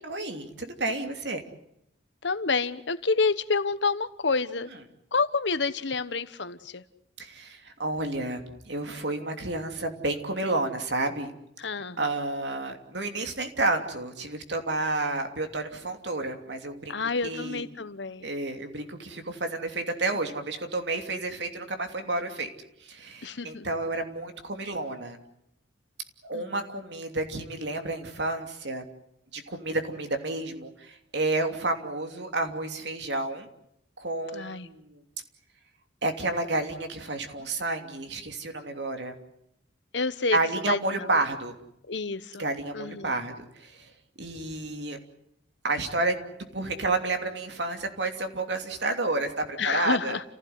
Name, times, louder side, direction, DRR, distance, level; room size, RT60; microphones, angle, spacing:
voice 1, 0.0-1.4 7.2-11.3 12.0-17.0 17.2-17.6 18.2-22.5 22.8-25.2 26.3-28.8 29.3-33.5 34.0-35.0 36.0-39.1 40.3-41.5 42.4-43.9 44.2-45.0 45.6-46.2 46.5-50.1, right 2 dB, 65° right, 6 dB, 3.0 m, -30 dB
voice 2, 2.2-4.7 5.1-6.8 11.6-12.1 16.9-18.3 23.2-23.7 26.3-26.6 34.3-34.7 39.9-40.4 40.7-41.1 41.9-42.4 42.7-43.2 49.6-50.2, left 4 dB, 70° left, 13 dB, 1.2 m, -29 dB
29.5 x 16.0 x 9.5 m, 0.80 s
head